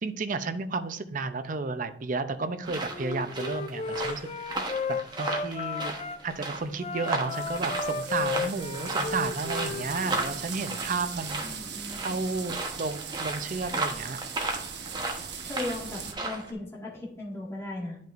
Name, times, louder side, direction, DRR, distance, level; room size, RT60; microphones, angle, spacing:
voice 1, 0.0-4.6 4.9-5.9 6.2-11.4 12.0-14.2, right 3 dB, 45° right, 9 dB, 0.6 m, -32 dB
sound 1, 2.6-16.5, right 2 dB, 25° right, 1.0 m, -35 dB
Wind instrument woodwind instrument, 2.9-6.2 6.7-10.3, left 4 dB, 35° left, 0.4 m, -34 dB
sound 2, 7.3-16.1, right 7 dB, 65° right, 0.9 m, -39 dB
voice 2, 11.4-12.1 15.4-18.0, left 2 dB, 15° left, -5 dB, 1.8 m, -37 dB
10.5 x 5.3 x 2.5 m, 0.72 s
head